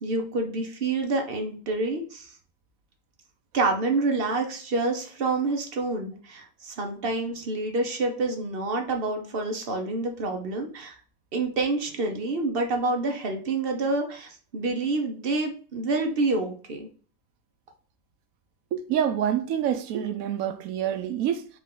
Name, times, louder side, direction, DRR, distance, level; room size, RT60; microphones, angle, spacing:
voice 1, 0.0-2.3 3.5-11.0 11.3-16.9, right 3 dB, 50° right, 0.8 m, -28 dB
voice 2, 18.7-21.5, right 9 dB, 75° right, 1.0 m, -27 dB
4.9 x 2.5 x 3.7 m
omnidirectional pair, 1.5 m